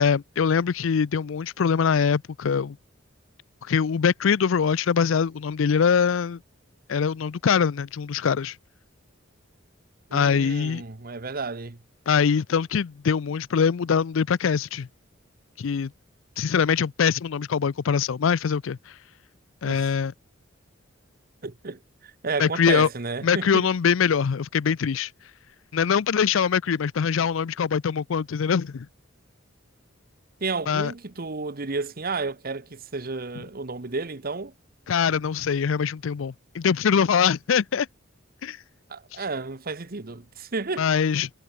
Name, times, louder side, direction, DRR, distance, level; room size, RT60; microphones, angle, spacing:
voice 1, 0.0-2.8 3.6-6.4 6.9-8.6 10.1-10.8 12.1-14.9 15.6-15.9 16.4-18.8 19.6-20.1 22.4-22.9 23.2-25.1 25.7-28.9 30.7-30.9 34.9-37.9 38.4-38.6 40.8-41.3, left 6 dB, 80° left, 0.5 m, -23 dB
voice 2, 10.1-11.8 19.6-19.9 21.4-23.7 30.4-34.5 38.9-40.9, right 4 dB, 50° right, 1.1 m, -32 dB
head